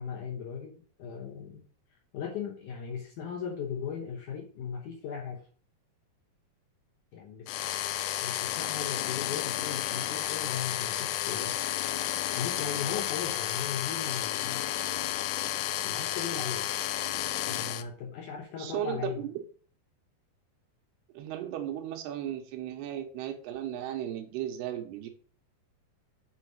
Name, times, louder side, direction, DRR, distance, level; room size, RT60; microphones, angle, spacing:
voice 1, 0.0-1.6 2.1-5.5 7.1-7.5 8.2-11.6 12.3-14.7 15.8-16.7 17.5-19.3, left 7 dB, 70° left, 1 dB, 2.0 m, -38 dB
sound 1, 7.5-17.8, left 13 dB, 90° left, 2.7 m, -32 dB
voice 2, 18.6-19.4 21.1-25.1, right 11 dB, 85° right, 5 dB, 3.0 m, -35 dB
7.0 x 3.9 x 6.3 m, 0.42 s
omnidirectional pair, 4.6 m